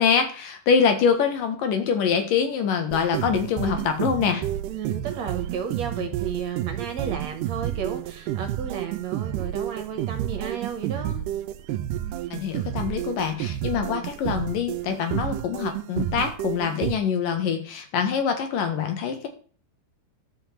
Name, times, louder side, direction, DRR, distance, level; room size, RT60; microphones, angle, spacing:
voice 1, 0.0-4.5 6.0-6.1 12.3-19.3, left 6 dB, 75° left, 6 dB, 3.3 m, -24 dB
sound 1, 2.9-17.0, right 12 dB, 80° right, 2.2 m, -30 dB
voice 2, 4.7-11.2, right 7 dB, 60° right, 6 dB, 2.0 m, -33 dB
12.5 x 5.8 x 7.4 m, 0.43 s
omnidirectional pair, 4.0 m